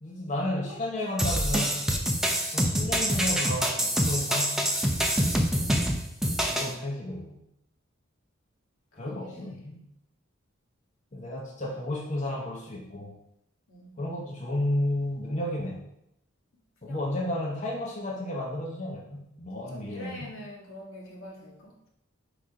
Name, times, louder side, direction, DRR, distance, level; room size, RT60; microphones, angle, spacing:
voice 1, 0.0-1.8 2.5-4.7 6.4-7.3 8.9-9.8 11.1-13.1 14.0-15.8 16.8-20.3, left 1 dB, 35° left, -2 dB, 0.9 m, -32 dB
sound 1, 1.2-6.7, equal, ahead, 0.6 m, -26 dB
voice 2, 5.6-5.9 8.9-9.6 13.7-14.0 16.8-17.0 19.6-21.9, left 1 dB, 85° left, -3 dB, 1.8 m, -45 dB
4.9 x 4.3 x 4.9 m, 0.80 s
head